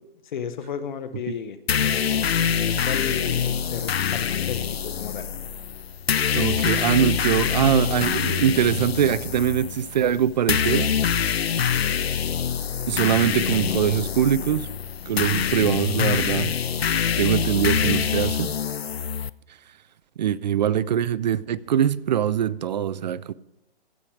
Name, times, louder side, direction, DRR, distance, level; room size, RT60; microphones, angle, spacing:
voice 1, 0.3-5.3, left 7 dB, 50° left, 1.0 m, -34 dB
sound 1, 1.7-19.3, left 8 dB, 90° left, 0.5 m, -25 dB
voice 2, 6.3-10.9 12.9-14.7 15.1-16.5 17.2-18.5 20.2-23.3, right 9 dB, 45° right, 0.4 m, -22 dB
15.5 x 5.7 x 4.8 m
figure-of-eight pair, 130°, 30 cm